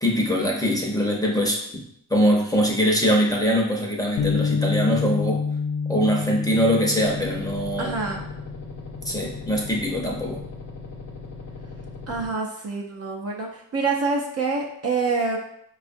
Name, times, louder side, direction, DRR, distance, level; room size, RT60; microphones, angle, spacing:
voice 1, 0.0-1.8 2.1-5.4 5.9-7.9 9.1-10.4, equal, 10° left, -1 dB, 0.8 m, -22 dB
Bass guitar, 4.2-10.4, left 5 dB, 55° left, 0.6 m, -29 dB
sound 1, 7.0-12.3, left 3 dB, 85° left, 0.8 m, -39 dB
voice 2, 7.8-8.3 12.1-15.4, right 4 dB, 40° right, 0 dB, 0.6 m, -26 dB
4.8 x 2.4 x 2.6 m, 0.71 s
cardioid pair, 85°, 40 cm